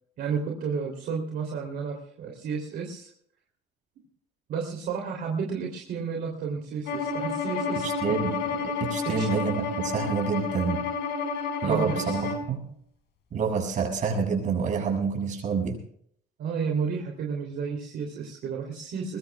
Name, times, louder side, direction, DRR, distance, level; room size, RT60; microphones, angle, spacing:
voice 1, 0.2-3.1 4.5-8.2 9.0-9.3 11.6-12.3 16.4-19.2, right 5 dB, 60° right, 1 dB, 3.3 m, -32 dB
Bowed string instrument, 6.9-12.5, left 4 dB, 70° left, 4.7 m, -30 dB
voice 2, 7.8-10.8 11.6-12.6 13.3-15.8, right 5 dB, 45° right, 1 dB, 7.1 m, -28 dB
22.0 x 21.5 x 2.4 m, 0.65 s
cardioid pair, 145°, 18 cm